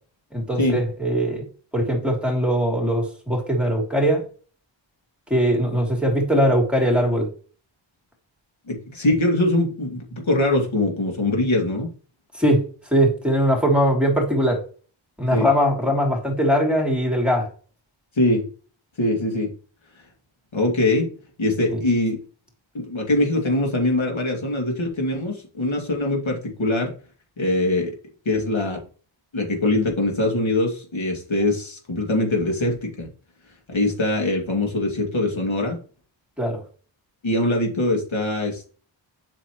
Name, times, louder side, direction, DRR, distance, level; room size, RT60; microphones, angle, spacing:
voice 1, 0.3-1.5 1.7-4.3 5.3-7.3 12.3-12.6 12.9-14.6 15.2-17.5 21.7-21.8 36.4-36.6, equal, ahead, 0 dB, 3.0 m, -21 dB
voice 2, 8.7-11.9 15.3-15.5 18.2-18.4 19.0-19.5 20.5-21.1 21.4-22.2 22.7-26.9 27.4-27.9 28.3-28.8 29.3-33.1 33.7-35.8 37.2-38.7, left 1 dB, 70° left, 1 dB, 2.5 m, -22 dB
7.8 x 6.2 x 3.0 m, 0.40 s
wide cardioid pair, 90°, 49 cm